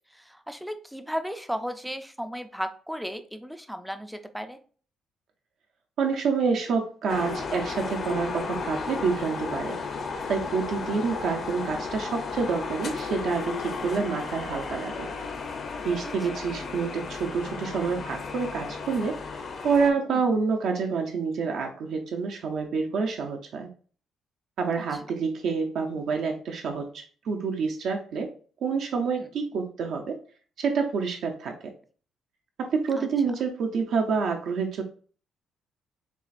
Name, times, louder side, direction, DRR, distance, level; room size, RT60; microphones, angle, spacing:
voice 1, 0.1-4.6 10.9-11.1 20.1-20.2 29.2-29.3 33.0-33.3, equal, ahead, 8 dB, 0.4 m, -35 dB
voice 2, 6.0-9.8 10.3-15.1 15.8-23.7 24.6-28.3 28.6-30.2 30.6-31.6 32.6-34.8, right 5 dB, 60° right, 3 dB, 0.5 m, -28 dB
sound 1, 7.1-19.9, left 4 dB, 40° left, 0.7 m, -34 dB
7.1 x 2.4 x 2.5 m, 0.42 s
cardioid pair, 155°, 0 cm